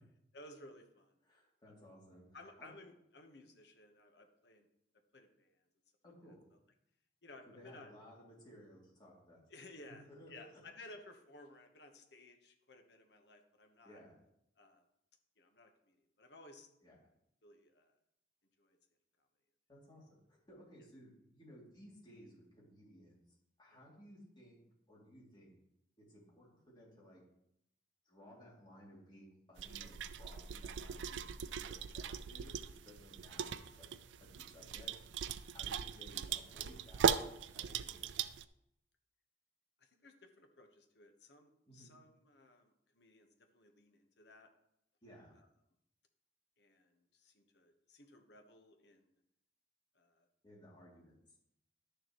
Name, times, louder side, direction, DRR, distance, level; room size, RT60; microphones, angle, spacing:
voice 1, 0.3-1.2 2.3-4.7 5.1-5.7 7.2-7.9 9.5-10.0 10.3-14.0 14.6-14.8 15.4-16.7 17.4-18.0 18.6-18.8 23.7-23.8 39.8-44.5 45.3-45.5 46.6-49.1 49.9-50.3, left 2 dB, 65° left, 4 dB, 1.2 m, -58 dB
voice 2, 1.2-2.7 6.0-6.4 7.5-9.4 9.9-10.6 13.8-14.1 16.8-17.0 19.7-24.6 24.9-25.6 26.0-27.2 28.0-31.3 31.6-33.9 34.2-35.1 35.5-38.3 41.7-41.9 45.0-45.3 50.4-51.4, equal, 25° left, -4 dB, 2.7 m, -58 dB
sound 1, 29.6-38.4, right 7 dB, 85° right, 0.4 m, -39 dB
11.5 x 6.8 x 3.1 m, 0.79 s
head